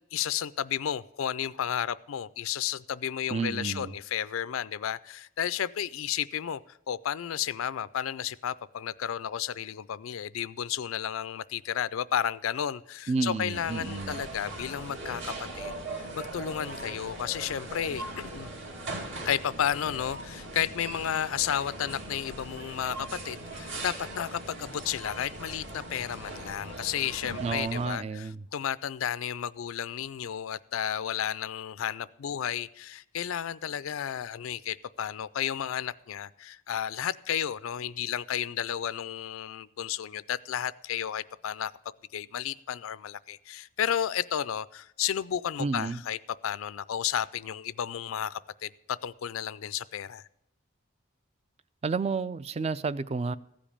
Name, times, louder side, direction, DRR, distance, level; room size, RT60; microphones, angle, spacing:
voice 1, 0.0-6.6 6.9-15.7 16.1-18.5 19.2-41.7 42.1-46.2 46.4-50.2, left 9 dB, 90° left, 0.4 m, -32 dB
voice 2, 3.3-3.9 13.1-14.2 27.4-28.4 45.6-46.0 51.8-53.4, right 4 dB, 30° right, 0.3 m, -31 dB
sound 1, 13.5-27.9, right 2 dB, 65° right, 2.4 m, -40 dB
15.0 x 5.1 x 8.5 m
head